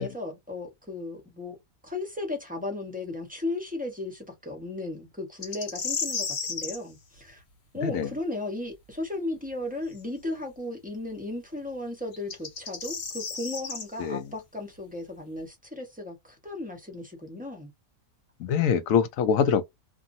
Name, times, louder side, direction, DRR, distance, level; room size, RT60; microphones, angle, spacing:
voice 1, 0.0-1.6 1.8-7.4 7.7-17.7, left 2 dB, 5° right, 0.8 m, -35 dB
sound 1, 5.4-6.8 9.9-10.0 12.1-13.8, left 5 dB, 50° left, 1.2 m, -33 dB
voice 2, 18.4-19.7, left 7 dB, 70° left, 1.0 m, -24 dB
2.6 x 2.6 x 2.5 m
omnidirectional pair, 1.5 m